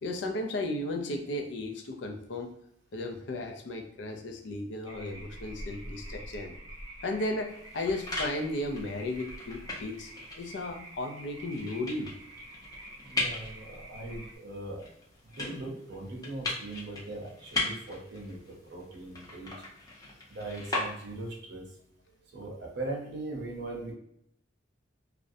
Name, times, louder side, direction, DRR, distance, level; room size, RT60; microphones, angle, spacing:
voice 1, 0.0-2.5 2.9-6.5 7.0-12.1, left 2 dB, 75° left, 4 dB, 0.4 m, -35 dB
sound 1, 4.8-14.4, right 1 dB, 20° right, 0.6 m, -47 dB
sound 2, 7.5-21.4, left 2 dB, 20° left, 0.5 m, -39 dB
voice 2, 13.0-14.8 15.3-19.5 20.3-21.6 22.3-23.9, right 2 dB, 65° right, -2 dB, 0.7 m, -40 dB
2.4 x 2.0 x 2.6 m, 0.73 s
head